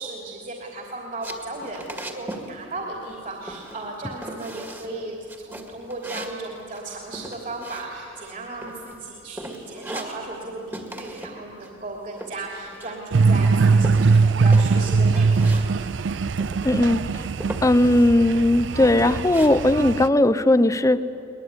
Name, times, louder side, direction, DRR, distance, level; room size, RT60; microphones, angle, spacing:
voice 1, 0.0-15.8, right 2 dB, 45° right, -1 dB, 3.1 m, -35 dB
sound 1, 1.2-2.5 2.8-3.2 3.5-3.9 4.2-4.9 5.3-8.3 8.6-9.1 9.4-10.5 10.7-11.4 11.6-13.1 13.4-15.7 15.9-16.0 16.4-16.9 17.4-18.1 18.5-19.5, right 1 dB, 15° right, 2.0 m, -38 dB
sound 2, 13.1-20.1, right 4 dB, 80° right, 0.5 m, -21 dB
voice 2, 16.6-17.0 17.6-21.0, left 1 dB, 15° left, 14 dB, 0.6 m, -18 dB
23.0 x 20.5 x 9.6 m, 2.9 s
head